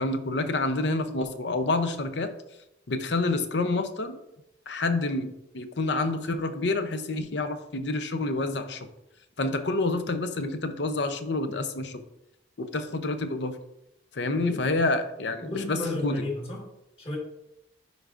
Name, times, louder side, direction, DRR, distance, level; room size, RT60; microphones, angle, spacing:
voice 1, 0.0-2.3 2.9-4.2 4.7-8.9 9.4-12.0 12.6-13.6 14.1-16.2, left 2 dB, 65° left, 9 dB, 0.7 m, -28 dB
voice 2, 15.4-16.7 17.0-17.2, left 2 dB, 30° left, -2 dB, 1.8 m, -32 dB
10.5 x 4.7 x 2.5 m, 0.85 s
head